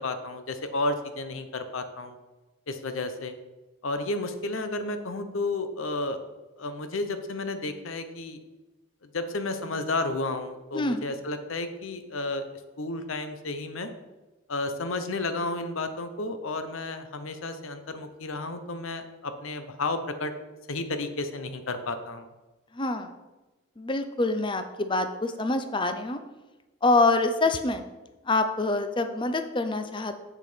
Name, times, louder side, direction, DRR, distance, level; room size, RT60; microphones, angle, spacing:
voice 1, 0.0-2.2 2.7-3.4 3.8-6.2 6.6-8.4 9.1-12.4 12.8-13.9 14.5-20.3 20.7-22.3, left 2 dB, 70° left, 9 dB, 0.8 m, -32 dB
voice 2, 22.7-23.1 23.8-26.2 26.8-27.8 28.3-30.2, left 2 dB, 25° left, 8 dB, 0.6 m, -26 dB
7.5 x 6.7 x 5.1 m, 1.1 s
head